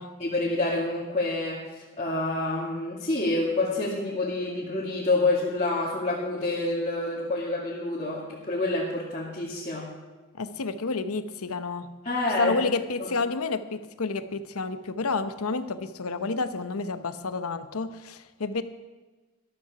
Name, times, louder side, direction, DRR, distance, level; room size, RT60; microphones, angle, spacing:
voice 1, 0.2-1.6 2.0-9.9 12.0-12.6, left 2 dB, 30° left, -7 dB, 2.2 m, -27 dB
voice 2, 10.3-11.9 12.4-18.6, left 3 dB, 75° left, 11 dB, 0.8 m, -30 dB
13.5 x 13.0 x 4.9 m, 1.3 s
head